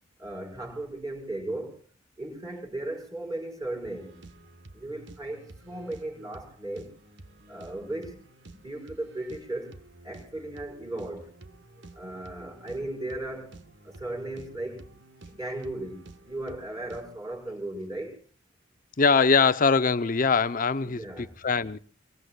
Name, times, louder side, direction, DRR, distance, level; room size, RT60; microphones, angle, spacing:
voice 1, 0.2-1.8 2.2-4.2 4.7-6.9 7.5-8.2 8.5-9.8 10.0-11.3 11.9-13.5 13.8-14.9 15.3-18.2 20.8-21.4, right 1 dB, 20° right, 5.9 m, -36 dB
Vintage Elecro pop loop, 3.8-17.2, right 2 dB, 65° right, 1.4 m, -51 dB
voice 2, 19.0-21.8, left 5 dB, 45° left, 0.7 m, -22 dB
26.5 x 23.5 x 2.4 m
head